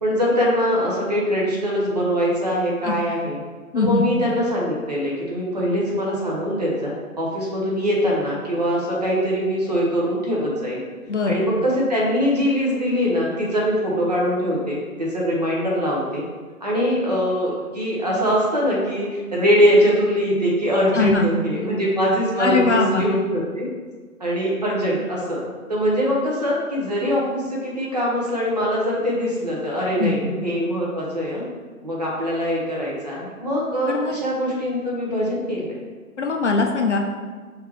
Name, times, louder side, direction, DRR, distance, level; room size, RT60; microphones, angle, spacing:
voice 1, 0.0-3.4 3.7-10.8 11.2-16.2 16.6-23.7 24.2-25.4 25.7-31.4 31.8-35.8, equal, 30° right, -4 dB, 0.7 m, -22 dB
voice 2, 3.7-4.1 11.1-11.4 20.9-21.3 22.4-23.1 30.0-30.2 33.9-34.1 36.2-37.0, left 4 dB, 55° left, 2 dB, 0.5 m, -21 dB
4.7 x 3.5 x 3.3 m, 1.5 s
hypercardioid pair, 165°, 44 cm